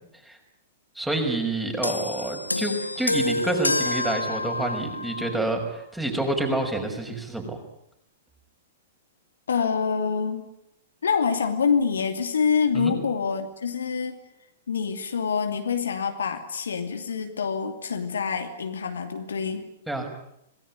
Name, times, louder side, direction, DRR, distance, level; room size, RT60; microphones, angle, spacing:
voice 1, 1.0-7.6 12.7-12.9 19.9-20.1, right 2 dB, 5° right, 3 dB, 5.9 m, -28 dB
sound 1, 1.8-5.4 6.3-6.5, left 2 dB, 80° left, 1.1 m, -28 dB
voice 2, 9.5-10.5 11.0-14.2 14.7-19.7, left 6 dB, 65° left, 6 dB, 2.7 m, -26 dB
27.0 x 19.5 x 9.7 m, 0.80 s
figure-of-eight pair, 105°, 0 cm